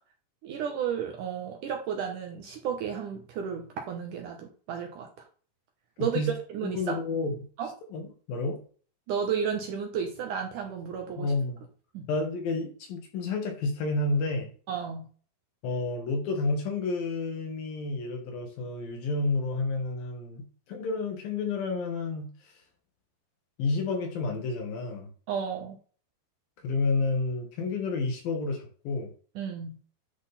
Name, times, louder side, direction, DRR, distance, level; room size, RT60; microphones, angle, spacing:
voice 1, 0.4-5.1 6.0-6.2 6.5-7.0 7.6-7.7 9.1-11.3 11.9-12.1 14.7-15.0 25.3-25.8 29.4-29.7, right 7 dB, 70° right, 3 dB, 2.1 m, -32 dB
voice 2, 6.6-7.4 7.9-8.0 8.3-8.6 11.2-11.6 12.1-14.5 15.6-22.3 23.6-25.1 26.6-29.1, left 3 dB, 70° left, 3 dB, 3.2 m, -30 dB
10.5 x 3.9 x 4.1 m, 0.41 s
omnidirectional pair, 4.5 m